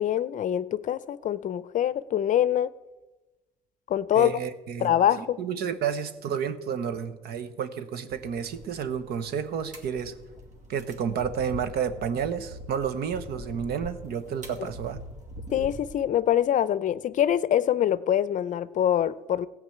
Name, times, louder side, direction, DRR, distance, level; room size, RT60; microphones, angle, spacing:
voice 1, 0.0-2.7 3.9-4.3 4.8-5.4 15.5-19.5, left 10 dB, 50° left, 0.6 m, -24 dB
voice 2, 4.1-4.9 5.2-10.2 10.7-15.0, right 7 dB, 70° right, 1.1 m, -31 dB
sound 1, 8.1-16.0, equal, 45° right, 2.5 m, -44 dB
15.0 x 5.2 x 9.3 m
cardioid pair, 110°, 17 cm